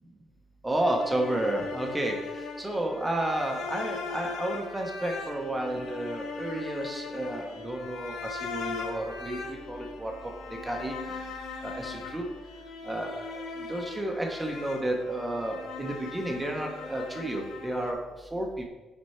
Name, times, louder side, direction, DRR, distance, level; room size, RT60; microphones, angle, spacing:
voice 1, 0.6-2.2 2.6-10.1 10.6-11.2 11.6-12.2 12.8-18.0 18.3-18.7, right 1 dB, 10° right, 2 dB, 0.8 m, -31 dB
sound 1, 0.8-17.9, left 4 dB, 75° left, 0.8 m, -39 dB
6.4 x 4.4 x 4.3 m, 1.2 s
cardioid pair, 110°, 0 cm